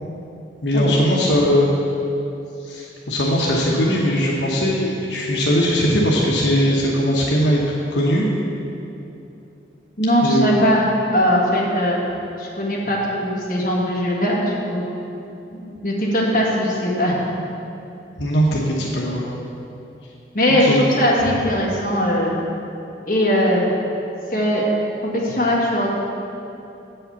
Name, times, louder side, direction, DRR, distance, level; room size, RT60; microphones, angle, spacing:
voice 1, 0.6-1.7 2.6-7.6 7.9-8.3 10.2-10.6 18.2-19.2 20.6-20.8, equal, 80° left, -3 dB, 1.0 m, -19 dB
voice 2, 10.0-10.9 11.1-12.0 12.4-14.8 15.6-17.2 20.3-22.3 23.1-23.7 24.3-24.6 25.0-25.9, equal, 45° left, -4 dB, 1.7 m, -20 dB
8.0 x 5.5 x 6.9 m, 2.8 s
head